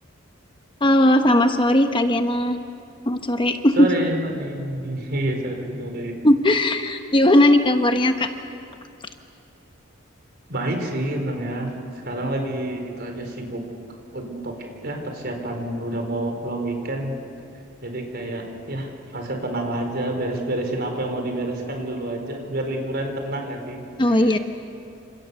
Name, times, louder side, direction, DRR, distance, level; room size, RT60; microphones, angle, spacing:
voice 1, 0.8-2.6 3.0-3.9 6.2-8.3 24.0-24.4, left 1 dB, 25° left, 6 dB, 1.1 m, -18 dB
voice 2, 3.8-6.2 10.5-11.7 12.0-13.6 14.1-14.5 14.8-17.2 17.8-24.4, right 1 dB, 50° right, 4 dB, 4.4 m, -28 dB
30.0 x 27.5 x 7.1 m, 2.6 s
head